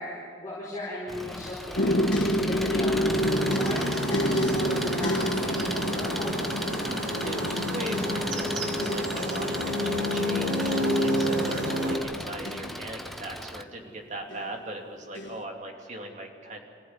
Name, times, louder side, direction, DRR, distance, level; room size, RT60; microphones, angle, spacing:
voice 1, 0.0-7.1 11.2-11.5, left 1 dB, 20° left, -7 dB, 4.7 m, -37 dB
Engine, 1.1-13.6, equal, ahead, 0.7 m, -36 dB
sound 1, 1.8-13.6 14.3-14.8 15.2-15.4, equal, 70° left, 1.6 m, -30 dB
sound 2, 3.1-12.0, equal, 85° right, 4.8 m, -29 dB
voice 2, 7.2-16.6, right 1 dB, 40° right, 2 dB, 2.8 m, -39 dB
26.0 x 15.5 x 9.6 m, 2.3 s
head